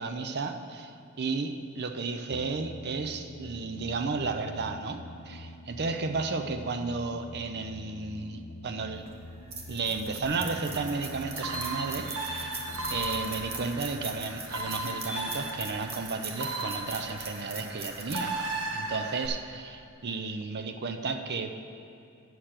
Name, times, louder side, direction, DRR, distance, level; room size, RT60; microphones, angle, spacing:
voice 1, 0.0-9.1 9.7-18.4 18.7-21.5, right 4 dB, 50° right, 7 dB, 0.6 m, -33 dB
sound 1, 2.3-15.5, left 1 dB, 65° left, 0.6 m, -47 dB
sound 2, 9.0-19.4, right 4 dB, 30° right, 0.9 m, -42 dB
sound 3, 10.2-19.3, right 2 dB, 65° right, 1.2 m, -36 dB
9.3 x 6.7 x 5.8 m, 2.6 s
head